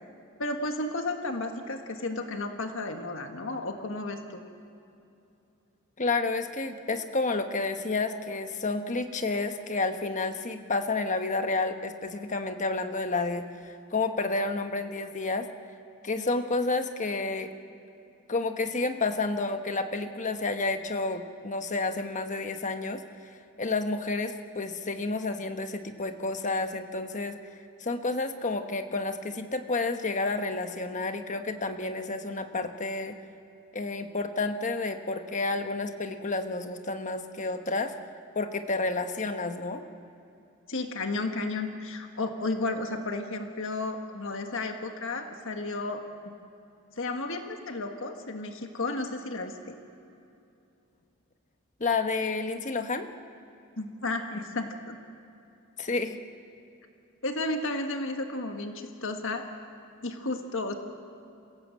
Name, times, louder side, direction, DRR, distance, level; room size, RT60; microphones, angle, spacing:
voice 1, 0.4-4.4 40.7-46.3 47.0-49.7 53.8-55.0 57.2-59.4 60.0-60.7, left 2 dB, 60° left, 5 dB, 1.6 m, -33 dB
voice 2, 6.0-15.5 16.0-17.5 18.3-23.0 23.6-27.4 27.8-33.2 33.7-37.9 38.3-39.8 51.8-53.1 55.8-56.2, left 3 dB, 35° left, 7 dB, 1.2 m, -30 dB
27.5 x 17.0 x 7.7 m, 2.7 s
head